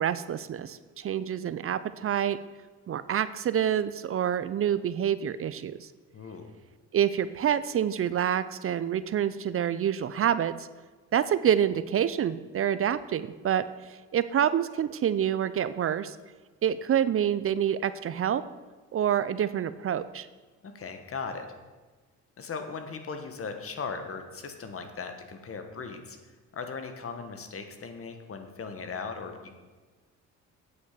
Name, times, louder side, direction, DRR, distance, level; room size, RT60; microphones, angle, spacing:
voice 1, 0.0-2.4 2.9-5.9 6.9-10.7 11.1-16.2 16.6-18.4 18.9-20.3, right 9 dB, 45° right, 14 dB, 0.5 m, -27 dB
voice 2, 6.1-6.5 20.6-21.4 22.4-26.2 26.5-29.5, left 5 dB, 50° left, 7 dB, 1.6 m, -38 dB
8.5 x 8.4 x 6.8 m, 1.3 s
cardioid pair, 90°, 30 cm